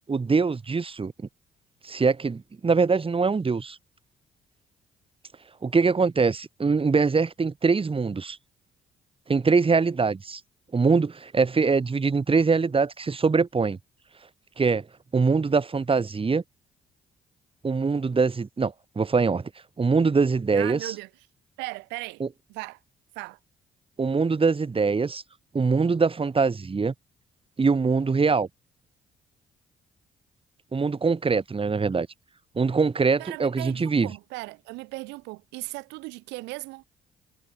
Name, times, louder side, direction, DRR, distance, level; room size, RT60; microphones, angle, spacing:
voice 1, 0.1-1.1 1.8-3.8 5.6-8.4 9.3-10.4 10.7-13.8 14.6-14.8 15.1-16.4 17.6-19.4 19.8-20.9 22.2-22.3 24.0-25.2 25.5-26.9 27.6-28.5 30.7-32.1 32.5-34.1, right 4 dB, 30° right, 1.6 m, -23 dB
voice 2, 20.5-21.1 21.6-22.2 22.5-22.8 23.2-23.4 33.2-36.8, right 24 dB, 85° right, 1.9 m, -37 dB
hypercardioid pair, 50°, 18 cm